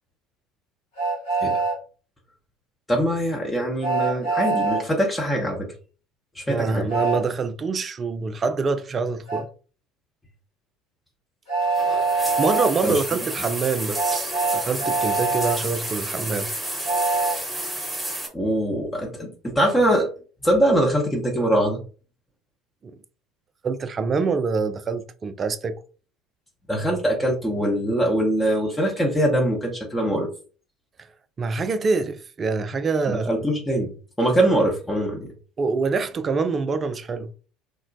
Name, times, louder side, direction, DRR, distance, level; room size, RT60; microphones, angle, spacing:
Train, 1.0-1.8 3.8-4.8 6.9-7.2 9.3-9.4 11.5-12.7 13.9-15.6 16.8-17.4, right 3 dB, 75° left, 1.5 m, -23 dB
voice 1, 2.9-5.7 6.3-6.9 12.8-13.0 18.3-20.1 20.4-21.8 26.7-30.3 33.1-33.9 34.2-35.3, right 1 dB, 10° left, 0.7 m, -22 dB
voice 2, 6.5-9.5 12.1-16.5 22.8-22.9 23.6-25.8 31.0-31.1 31.4-33.3 35.6-37.3, right 4 dB, 30° right, 0.3 m, -25 dB
sound 1, 11.6-18.3, right 1 dB, 10° right, 1.0 m, -31 dB
2.9 x 2.0 x 2.6 m
figure-of-eight pair, 65°, 0 cm